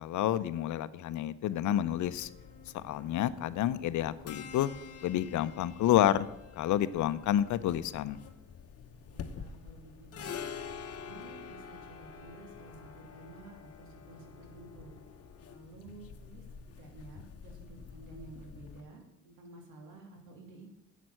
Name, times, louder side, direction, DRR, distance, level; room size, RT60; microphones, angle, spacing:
voice 1, 0.0-2.3 2.7-4.7 5.0-6.3 6.6-8.2, left 12 dB, 75° left, 14 dB, 0.6 m, -29 dB
sound 1, 2.0-18.8, left 6 dB, 50° left, 0.9 m, -47 dB
voice 2, 9.1-10.3 10.9-14.9 15.5-20.8, right 3 dB, 75° right, 1 dB, 2.8 m, -52 dB
8.2 x 6.2 x 7.6 m, 0.93 s
cardioid pair, 90°, 30 cm